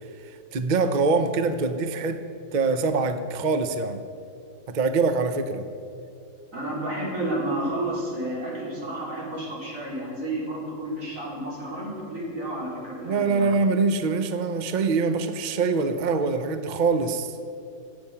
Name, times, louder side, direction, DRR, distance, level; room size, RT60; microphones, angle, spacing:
voice 1, 0.2-2.2 2.5-4.0 4.7-5.7 13.0-17.3, right 4 dB, 60° right, 9 dB, 0.4 m, -24 dB
voice 2, 6.5-13.5, right 1 dB, 45° right, -5 dB, 4.7 m, -31 dB
26.0 x 8.8 x 5.9 m, 2.5 s
omnidirectional pair, 2.0 m